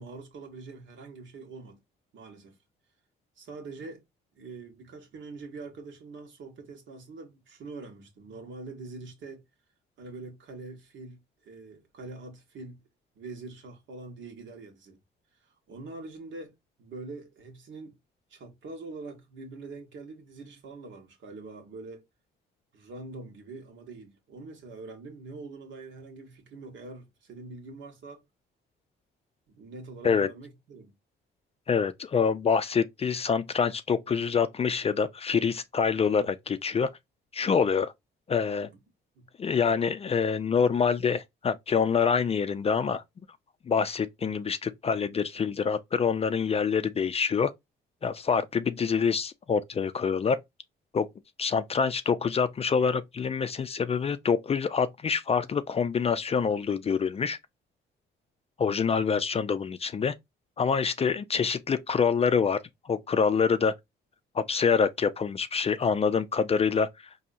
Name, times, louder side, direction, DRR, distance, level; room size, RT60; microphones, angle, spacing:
voice 1, 0.0-1.8 2.1-2.6 3.4-4.0 4.3-9.4 10.0-12.8 13.1-15.0 15.7-16.5 16.8-18.0 18.3-22.0 22.7-28.2 29.5-30.9 38.7-38.8 39.1-39.3, right 3 dB, 70° right, 1.3 m, -44 dB
voice 2, 31.7-36.9 37.3-37.9 38.3-38.7 39.4-43.0 43.6-47.5 48.0-50.4 50.9-51.1 51.4-57.4 58.6-60.1 60.6-62.6 62.8-63.7 64.3-67.1, left 6 dB, 30° left, 0.4 m, -26 dB
4.2 x 2.7 x 2.5 m
cardioid pair, 90°, 20 cm